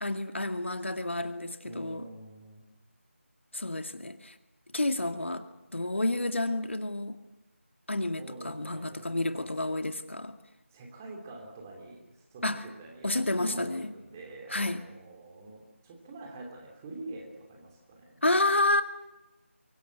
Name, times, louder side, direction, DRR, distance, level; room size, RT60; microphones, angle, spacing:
voice 1, 0.0-2.0 3.5-4.4 4.7-5.5 5.7-7.2 7.9-10.4 12.4-12.6 13.0-13.9 14.5-14.8 18.2-18.8, left 2 dB, 60° left, 7 dB, 2.2 m, -30 dB
voice 2, 1.6-2.6 8.2-9.5 10.7-18.2, right 2 dB, 15° right, 0 dB, 2.8 m, -46 dB
25.0 x 24.0 x 8.2 m, 1.0 s
figure-of-eight pair, 165°, 7 cm